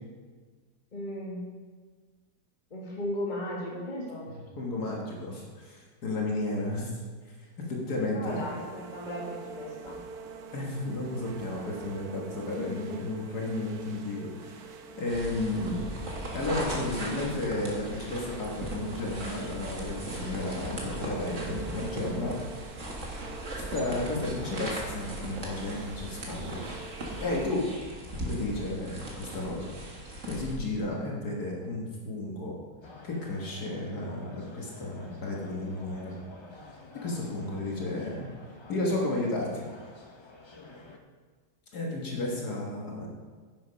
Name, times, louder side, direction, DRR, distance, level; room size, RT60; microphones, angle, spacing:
voice 1, 0.9-1.5 2.7-4.3 8.0-10.0 12.5-13.2, left 1 dB, 30° left, -3 dB, 1.6 m, -36 dB
voice 2, 4.6-7.0 7.4-8.4 10.5-15.9 16.3-22.4 23.7-26.6 27.0-27.7 28.2-29.8 30.3-32.6 33.0-36.2 36.9-38.3 38.7-39.7 41.7-43.1, left 2 dB, 65° left, -2 dB, 2.0 m, -33 dB
sound 1, 8.3-27.5, right 4 dB, 65° right, 1.3 m, -46 dB
sound 2, 15.0-30.5, right 1 dB, 45° right, 2.0 m, -38 dB
sound 3, 32.8-41.0, left 2 dB, 45° left, 0.3 m, -49 dB
10.0 x 7.7 x 5.2 m, 1.5 s
omnidirectional pair, 1.8 m